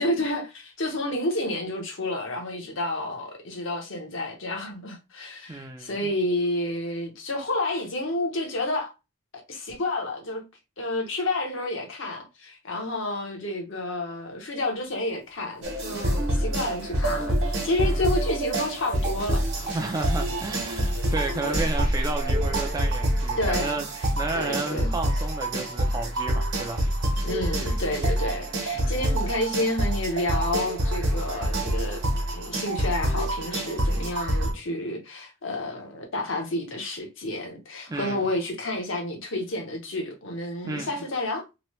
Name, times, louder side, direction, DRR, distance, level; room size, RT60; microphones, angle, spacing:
voice 1, 0.0-8.9 9.5-10.4 10.8-19.7 21.4-21.6 23.4-23.9 24.3-24.9 27.2-32.0 32.3-41.4, left 1 dB, 60° left, 0.8 m, -30 dB
voice 2, 5.5-5.9 17.8-18.1 19.7-26.9 28.7-29.0 37.9-38.2 40.6-40.9, right 2 dB, 15° right, 0.3 m, -32 dB
sound 1, 15.1-23.7, equal, 85° left, 1.4 m, -37 dB
sound 2, 15.6-34.5, right 1 dB, 55° right, 1.1 m, -27 dB
3.0 x 2.1 x 3.0 m
head